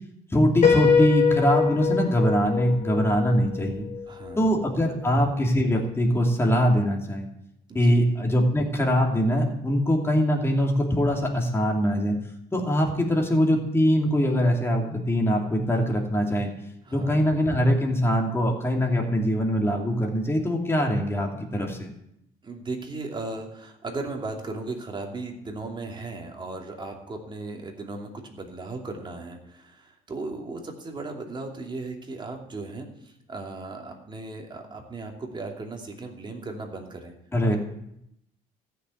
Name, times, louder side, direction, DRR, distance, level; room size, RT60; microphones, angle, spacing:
voice 1, 0.3-3.9 4.4-7.3 7.7-12.2 12.5-16.5 16.9-21.9 37.3-37.6, equal, 15° left, 0 dB, 2.9 m, -23 dB
Piano, 0.6-4.4, left 6 dB, 45° left, 4.3 m, -24 dB
voice 2, 4.1-4.8 7.7-8.1 16.8-17.3 22.4-37.1, right 3 dB, 25° right, 2 dB, 2.7 m, -36 dB
14.5 x 6.8 x 9.1 m, 0.79 s
cardioid pair, 110°, 17 cm